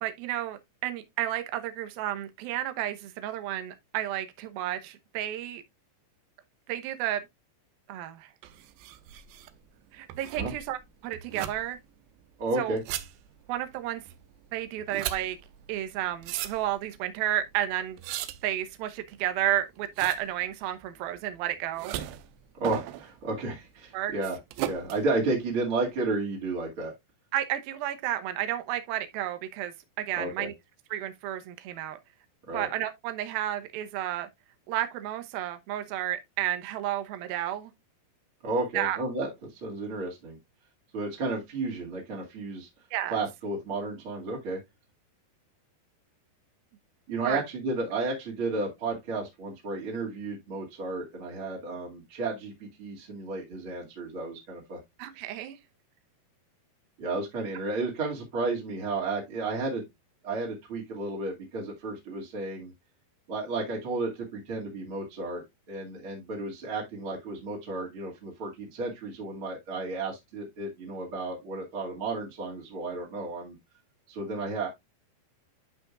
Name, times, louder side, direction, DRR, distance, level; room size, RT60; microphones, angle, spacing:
voice 1, 0.0-5.6 6.7-7.2 7.9-8.3 9.9-11.8 12.6-12.8 13.5-14.0 14.5-15.4 15.7-18.0 18.4-22.0 23.9-24.1 27.3-30.5 30.9-32.0 32.5-34.3 34.7-37.7 38.7-39.0 42.9-43.2 47.2-47.4 55.0-55.6, right 12 dB, 75° right, 2.6 m, -32 dB
sound 1, 8.4-26.1, right 13 dB, 90° right, 2.8 m, -39 dB
voice 2, 12.4-12.8 22.6-24.4 24.6-26.9 30.1-30.5 32.5-32.7 38.4-40.4 40.9-42.7 43.1-44.6 47.1-54.8 57.0-59.9 60.2-62.7 63.3-73.6 74.1-74.7, right 3 dB, 40° right, 2.5 m, -32 dB
12.0 x 5.1 x 2.4 m
omnidirectional pair, 4.8 m